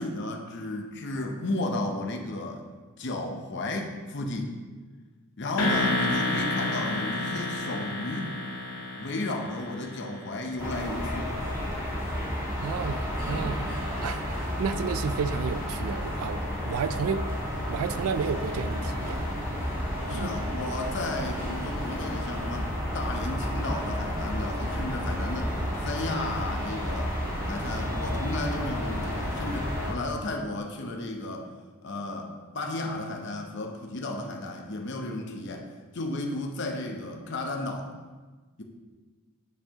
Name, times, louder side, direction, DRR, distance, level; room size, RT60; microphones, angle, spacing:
voice 1, 0.0-2.6 3.0-4.5 5.4-8.3 8.9-11.4 20.1-25.6 25.8-27.2 27.5-31.5 31.8-35.7 35.9-37.9 38.6-38.7, left 2 dB, 50° left, 3 dB, 0.7 m, -33 dB
sound 1, 5.6-10.5, left 2 dB, 85° left, 0.9 m, -30 dB
sound 2, 10.6-29.9, equal, 15° right, 1.7 m, -31 dB
voice 2, 12.6-17.3 17.7-19.2 20.1-20.3, right 6 dB, 75° right, 13 dB, 0.3 m, -32 dB
8.0 x 4.6 x 2.9 m, 1.3 s
head